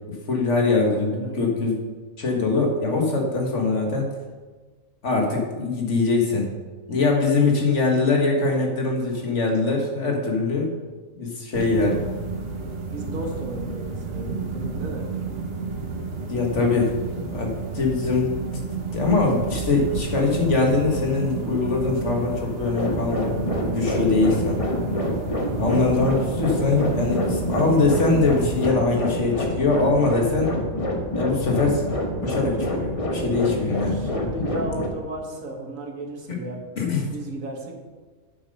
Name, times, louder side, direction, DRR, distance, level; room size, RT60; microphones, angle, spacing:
voice 1, 0.1-1.8 2.2-4.1 5.0-6.5 6.9-10.7 11.2-12.0 16.3-16.9 17.2-18.3 18.9-23.3 23.6-24.6 25.6-30.6 31.2-31.8 32.2-34.0 36.3-36.4 36.8-37.1, left 3 dB, 60° left, 0 dB, 1.9 m, -22 dB
voice 2, 0.8-1.5 9.7-9.8 12.9-15.1 23.5-24.2 24.6-25.0 29.3-29.4 33.1-33.3 33.9-36.8 37.1-37.8, right 1 dB, 80° right, 2 dB, 1.8 m, -35 dB
sound 1, 11.5-28.7, right 4 dB, 50° right, 1.2 m, -31 dB
sound 2, 22.7-34.9, left 1 dB, 25° left, 1.2 m, -27 dB
8.2 x 7.2 x 5.4 m, 1.3 s
omnidirectional pair, 1.4 m